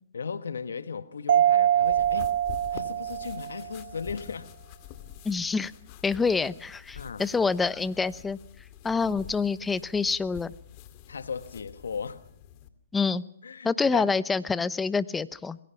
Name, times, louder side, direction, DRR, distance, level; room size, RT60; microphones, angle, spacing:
voice 1, 0.1-2.3 2.7-4.5 7.0-7.3 11.1-12.2 13.4-14.1, left 6 dB, 85° left, 1.5 m, -36 dB
Mallet percussion, 1.3-3.8, right 11 dB, 60° right, 1.0 m, -24 dB
sound 1, 1.8-12.7, left 11 dB, 40° left, 2.4 m, -47 dB
voice 2, 5.2-5.7 6.0-8.4 8.8-10.5 12.9-13.2 13.6-15.6, left 4 dB, 10° left, 0.8 m, -27 dB
27.0 x 20.5 x 5.8 m
hypercardioid pair, 135°, 0 cm